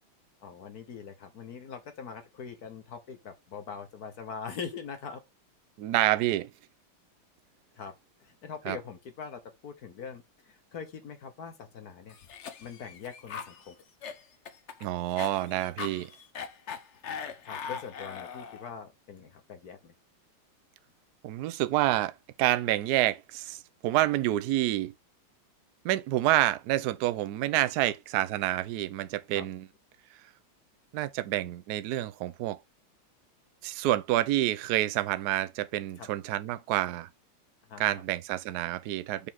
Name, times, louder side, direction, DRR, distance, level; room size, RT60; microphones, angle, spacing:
voice 1, 0.4-5.2 7.8-7.9 8.2-12.2 12.6-13.8 17.4-19.9 29.3-29.4 36.0-36.1 37.7-37.8, left 6 dB, 55° left, 1.3 m, -42 dB
voice 2, 5.8-6.5 8.6-8.8 14.8-16.1 21.2-22.1 22.4-24.9 25.8-29.7 30.9-32.6 33.6-37.1 37.8-39.3, right 15 dB, 75° right, 0.9 m, -28 dB
Cough, 12.1-18.7, left 6 dB, 70° left, 0.6 m, -40 dB
6.9 x 5.0 x 3.6 m
omnidirectional pair, 2.4 m